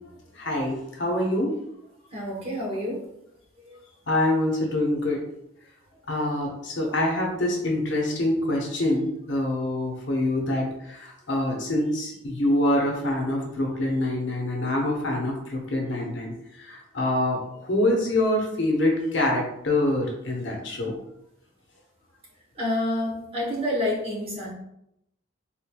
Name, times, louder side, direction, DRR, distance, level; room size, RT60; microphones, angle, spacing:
voice 1, 0.3-1.6 4.1-5.2 6.1-21.0, left 1 dB, 60° left, -1 dB, 0.8 m, -25 dB
voice 2, 2.1-3.1 3.6-3.8 22.5-24.5, left 1 dB, 25° right, -3 dB, 0.9 m, -28 dB
3.7 x 3.1 x 2.2 m, 0.80 s
head